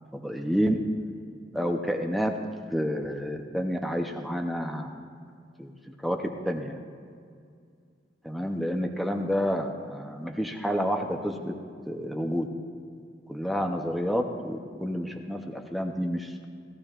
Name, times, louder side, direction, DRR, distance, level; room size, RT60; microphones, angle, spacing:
voice 1, 0.1-0.8 1.5-2.3 2.7-4.9 5.6-5.7 6.0-6.8 8.2-11.5 11.9-12.5 13.3-16.5, equal, ahead, 3 dB, 0.7 m, -29 dB
18.0 x 14.0 x 2.5 m, 2.2 s
head